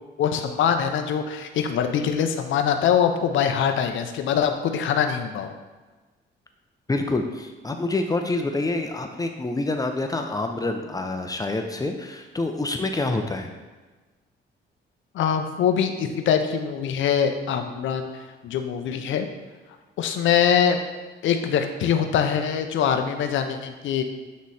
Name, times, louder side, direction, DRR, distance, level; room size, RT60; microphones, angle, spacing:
voice 1, 0.2-5.5 15.1-19.3 20.0-20.8 21.2-24.0, left 8 dB, 75° left, 7 dB, 0.7 m, -23 dB
voice 2, 6.9-13.5, left 2 dB, 20° left, 4 dB, 0.5 m, -27 dB
8.2 x 3.1 x 4.1 m, 1.3 s
cardioid pair, 90°, 20 cm